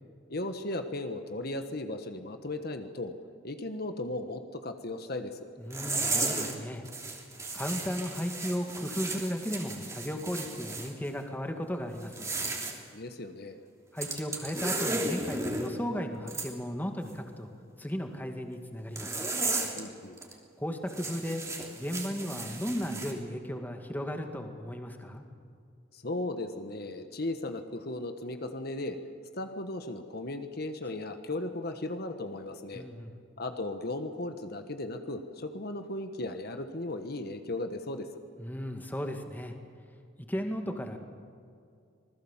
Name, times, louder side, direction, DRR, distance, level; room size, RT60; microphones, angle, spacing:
voice 1, 0.3-3.1 3.4-5.5 12.9-13.6 19.8-20.2 25.9-29.0 29.4-32.8 33.4-38.1, left 2 dB, 55° left, 7 dB, 1.4 m, -36 dB
voice 2, 5.6-6.9 7.5-12.3 13.9-17.5 17.8-19.2 20.6-21.4 21.8-25.2 32.7-33.1 38.4-39.6 40.3-41.0, equal, 10° left, 4 dB, 2.1 m, -35 dB
sound 1, 5.7-6.6 6.8-10.9 12.0-12.8 14.0-15.7 16.3-16.5 19.0-19.8 20.2-20.3 20.9-23.1, right 2 dB, 15° right, 3.0 m, -34 dB
26.5 x 20.0 x 7.4 m, 2.4 s
head